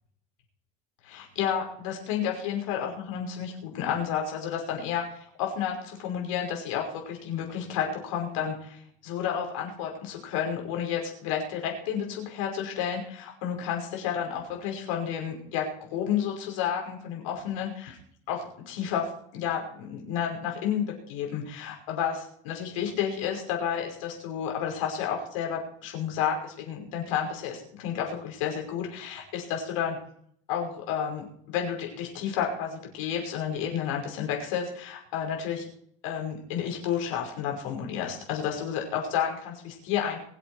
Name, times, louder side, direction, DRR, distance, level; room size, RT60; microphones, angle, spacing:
voice 1, 1.0-18.0 18.3-30.0 30.5-35.7 36.0-40.2, left 8 dB, 85° left, 1 dB, 5.5 m, -31 dB
23.0 x 8.2 x 4.9 m, 0.64 s
cardioid pair, 155°, 16 cm